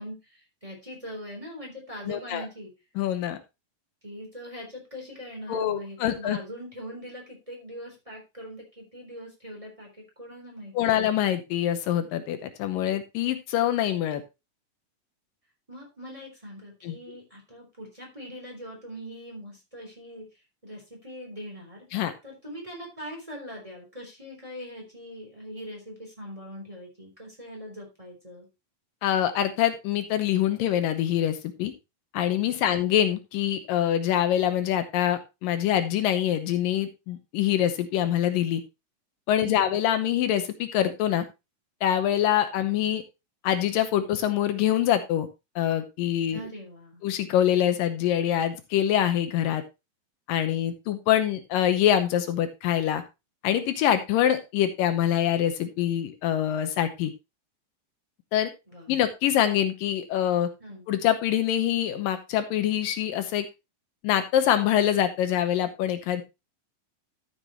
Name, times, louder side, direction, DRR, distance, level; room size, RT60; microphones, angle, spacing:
voice 1, 0.0-2.7 4.0-10.9 15.7-20.3 20.6-28.5 39.4-39.7 46.3-47.0 58.7-58.9 60.6-60.9, equal, 10° right, -1 dB, 3.5 m, -42 dB
voice 2, 2.1-2.5 3.0-3.4 5.5-6.4 10.8-14.2 16.8-17.0 21.9-22.1 29.0-31.7 32.1-38.6 39.3-41.3 41.8-43.0 43.4-45.3 45.6-46.5 47.0-49.6 50.3-53.0 53.4-57.1 58.3-58.5 58.9-60.5 60.9-63.5 64.0-66.2, left 11 dB, 80° left, 9 dB, 2.6 m, -25 dB
13.0 x 7.3 x 3.1 m, 0.25 s
omnidirectional pair, 4.0 m